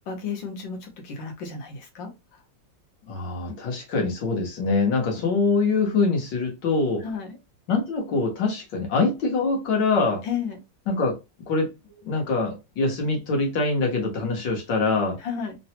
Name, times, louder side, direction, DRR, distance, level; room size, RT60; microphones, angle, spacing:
voice 1, 0.1-2.4 7.0-7.4 10.2-10.6 15.2-15.6, left 6 dB, 90° left, 1.6 m, -33 dB
voice 2, 3.1-7.0 7.7-10.2 10.9-11.2 11.5-11.7 12.0-15.2, left 3 dB, 75° left, 1.8 m, -24 dB
3.8 x 2.1 x 2.8 m
omnidirectional pair, 2.0 m